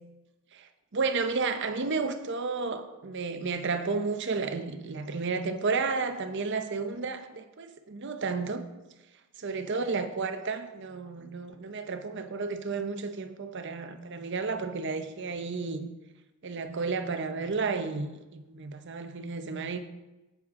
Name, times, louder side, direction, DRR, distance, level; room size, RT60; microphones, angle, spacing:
voice 1, 0.5-8.6 9.4-15.9 16.4-19.8, right 4 dB, 55° right, 0.8 m, -32 dB
10.5 x 7.9 x 3.7 m
head